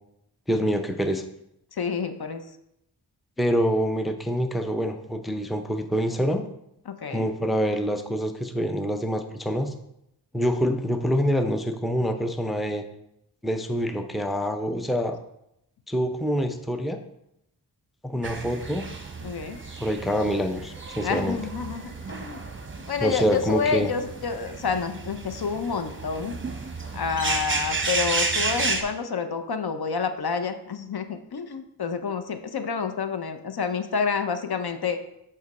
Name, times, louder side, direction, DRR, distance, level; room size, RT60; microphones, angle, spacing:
voice 1, 0.5-1.2 3.4-6.4 7.1-9.7 10.3-12.8 13.4-15.2 15.9-17.0 18.0-18.9 19.8-21.4 23.0-23.9, equal, ahead, 6 dB, 0.5 m, -26 dB
voice 2, 1.7-2.4 6.9-7.3 19.2-19.6 21.0-22.4 22.9-26.4 26.9-35.0, left 6 dB, 65° left, 8 dB, 0.6 m, -29 dB
sound 1, 18.2-28.8, right 3 dB, 30° right, 0.8 m, -32 dB
7.4 x 4.0 x 4.1 m, 0.80 s
wide cardioid pair, 70°, 41 cm